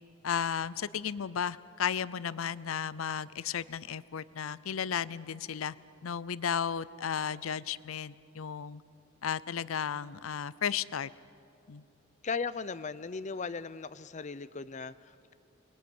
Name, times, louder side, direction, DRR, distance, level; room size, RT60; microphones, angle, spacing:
voice 1, 0.2-5.7 6.0-8.8 9.2-11.1 11.7-11.8, left 7 dB, 85° left, 18 dB, 0.5 m, -34 dB
voice 2, 12.2-15.3, left 5 dB, 35° left, 14 dB, 0.6 m, -37 dB
29.5 x 20.5 x 9.4 m, 2.5 s
head